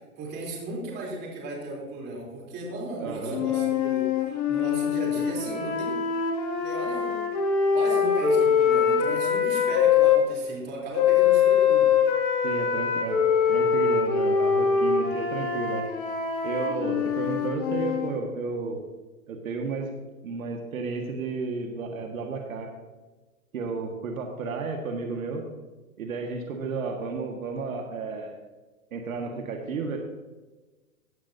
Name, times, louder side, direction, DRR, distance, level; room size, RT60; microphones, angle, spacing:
voice 1, 0.2-6.0 6.6-7.2 7.7-11.9, right 2 dB, 20° right, -2 dB, 3.4 m, -35 dB
voice 2, 3.0-3.4 12.4-13.2 13.5-15.9 16.4-18.8 19.3-19.9 20.2-22.7 23.5-25.5 26.0-28.4 28.9-30.0, right 4 dB, 65° right, 2 dB, 1.8 m, -32 dB
sound 1, 3.3-10.2 10.9-18.1, left 7 dB, 30° left, 2.2 m, -23 dB
16.0 x 9.3 x 2.7 m, 1.2 s
hypercardioid pair, 140°, 44 cm